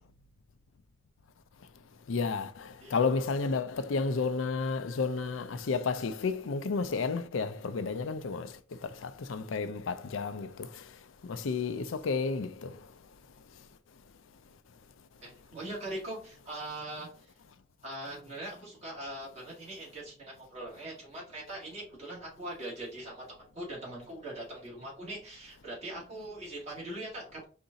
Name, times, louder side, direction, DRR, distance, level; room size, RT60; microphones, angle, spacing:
voice 1, 2.1-8.5 8.8-10.7 11.3-12.7, left 4 dB, 85° left, 0.5 m, -31 dB
voice 2, 15.2-17.3 17.8-23.2 23.5-27.4, right 1 dB, 35° right, 2.2 m, -41 dB
4.8 x 2.6 x 4.0 m
head